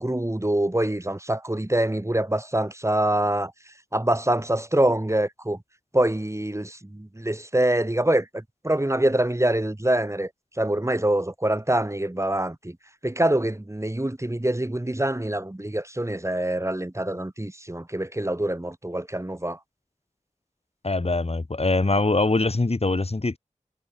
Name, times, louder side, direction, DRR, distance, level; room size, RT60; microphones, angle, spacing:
voice 1, 0.0-3.5 3.9-5.6 5.9-10.3 10.6-12.8 13.0-19.6, right 1 dB, 20° right, 2.9 m, -25 dB
voice 2, 20.8-23.4, left 2 dB, 50° left, 2.7 m, -23 dB
wide cardioid pair, 50°, 13 cm